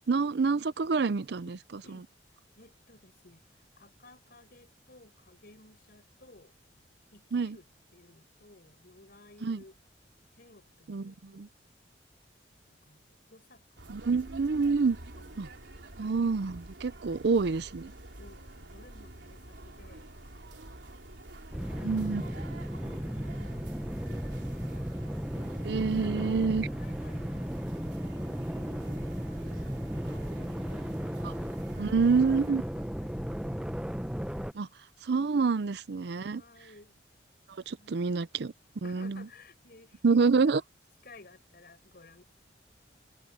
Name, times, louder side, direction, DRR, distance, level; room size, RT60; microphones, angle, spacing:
voice 1, 0.1-1.6 7.3-7.6 9.4-9.6 10.9-11.5 13.9-15.0 15.4-15.5 16.0-17.9 21.8-22.2 25.6-26.7 31.2-31.3 31.8-32.6 34.5-34.7 35.0-36.4 37.7-38.5 38.8-39.2 40.0-40.6, right 4 dB, 65° right, 0.5 m, -27 dB
voice 2, 1.5-2.1 2.6-6.6 7.1-7.7 7.9-9.8 10.3-11.5 12.6-14.2 15.1-16.0 17.1-17.3 18.2-20.1 21.4-22.2 22.8-25.0 26.0-27.5 28.3-30.4 31.0-32.2 32.5-33.8 35.5-35.7 36.2-36.9 37.7-38.1 38.8-40.2 40.4-40.5 41.0-42.3, left 2 dB, 60° left, 5.7 m, -57 dB
sound 1, 13.8-32.5, right 1 dB, 85° right, 3.5 m, -48 dB
sound 2, 21.5-34.5, equal, 5° right, 0.6 m, -35 dB
head